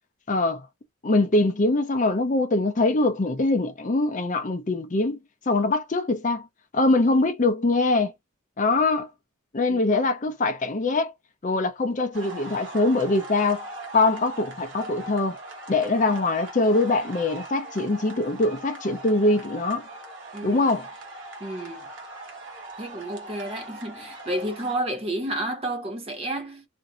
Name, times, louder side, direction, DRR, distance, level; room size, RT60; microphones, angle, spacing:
voice 1, 0.3-0.7 1.0-5.2 5.5-6.5 6.7-8.1 8.6-9.1 9.5-11.1 11.4-13.7 13.9-15.4 15.7-19.9 20.4-20.9, left 2 dB, 35° left, 0.5 m, -23 dB
sound 1, 12.1-24.8, right 2 dB, 60° right, 1.1 m, -40 dB
voice 2, 20.3-20.7 21.4-21.9 22.8-26.7, right 1 dB, 30° right, 0.8 m, -31 dB
2.7 x 2.6 x 2.4 m
head